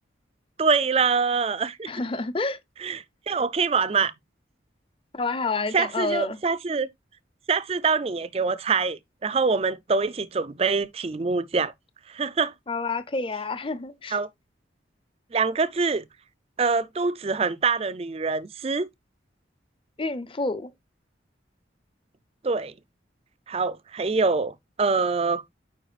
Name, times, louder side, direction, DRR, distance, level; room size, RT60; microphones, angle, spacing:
voice 1, 0.6-1.9 2.8-4.1 5.7-6.9 7.5-11.7 12.1-12.5 14.1-14.3 15.3-16.0 16.6-18.9 22.4-22.7 23.5-25.4, right 4 dB, 30° right, 0.4 m, -25 dB
voice 2, 1.9-2.6 5.1-6.4 12.7-14.2 20.0-20.7, left 3 dB, 30° left, 0.6 m, -28 dB
9.0 x 4.9 x 2.4 m
head